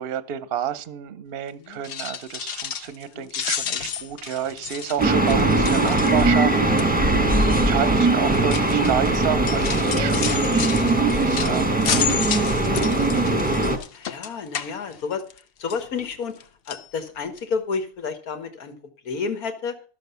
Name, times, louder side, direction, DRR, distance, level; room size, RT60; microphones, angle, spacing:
voice 1, 0.0-6.6 7.5-12.1, right 9 dB, 55° right, 14 dB, 0.8 m, -30 dB
sound 1, 1.7-3.0 3.3-6.4 6.8-7.1 7.9-15.4 15.7-16.4 16.7-16.9 17.4-17.5 17.7-17.8, left 8 dB, 55° left, 0.7 m, -31 dB
sound 2, 5.0-13.8, right 2 dB, 5° right, 0.9 m, -20 dB
voice 2, 7.5-7.9 12.6-13.3 13.9-15.2 15.6-18.8 19.0-19.8, left 5 dB, 90° left, 8 dB, 1.8 m, -31 dB
12.5 x 6.4 x 6.8 m, 0.41 s
omnidirectional pair, 1.5 m